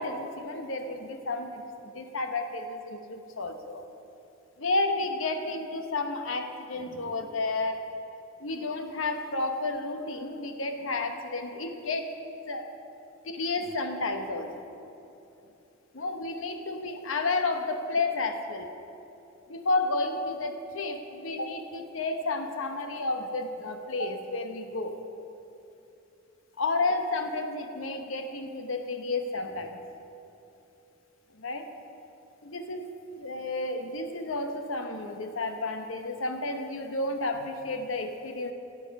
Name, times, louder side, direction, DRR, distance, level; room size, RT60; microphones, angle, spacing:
voice 1, 0.0-3.8 4.6-7.8 8.4-12.1 12.5-12.6 13.2-14.6 15.9-18.7 19.5-25.0 26.6-29.8 31.3-31.6 32.4-32.9 33.2-38.5, left 3 dB, 80° left, 6 dB, 1.0 m, -31 dB
17.0 x 7.3 x 5.3 m, 2.9 s
head